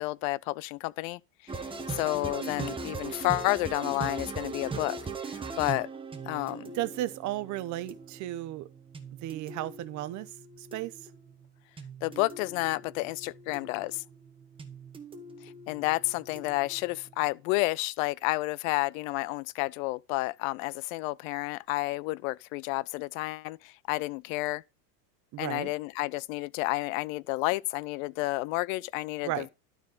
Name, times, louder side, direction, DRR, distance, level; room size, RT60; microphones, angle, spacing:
voice 1, 0.0-5.0 5.2-5.9 6.3-6.7 12.0-14.0 15.7-24.6 25.4-29.5, left 21 dB, 60° left, 0.5 m, -31 dB
sound 1, 1.5-17.3, right 4 dB, 10° right, 1.0 m, -41 dB
voice 2, 6.7-8.7 9.1-10.3 10.6-10.9 25.3-25.7 29.2-29.5, right 15 dB, 35° right, 0.7 m, -34 dB
12.0 x 4.4 x 3.8 m
supercardioid pair, 135°, 49 cm